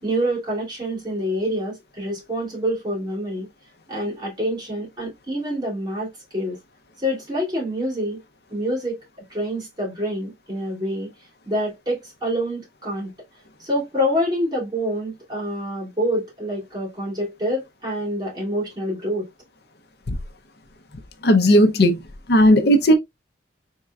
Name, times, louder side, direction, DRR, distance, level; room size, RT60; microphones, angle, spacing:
voice 1, 0.0-3.5 3.9-6.6 7.0-8.2 8.5-9.0 9.3-11.1 11.5-13.1 13.6-19.3, equal, 25° right, 2.5 m, -26 dB
voice 2, 21.2-22.0 22.3-22.9, equal, 65° left, 0.7 m, -15 dB
4.4 x 3.6 x 2.3 m
head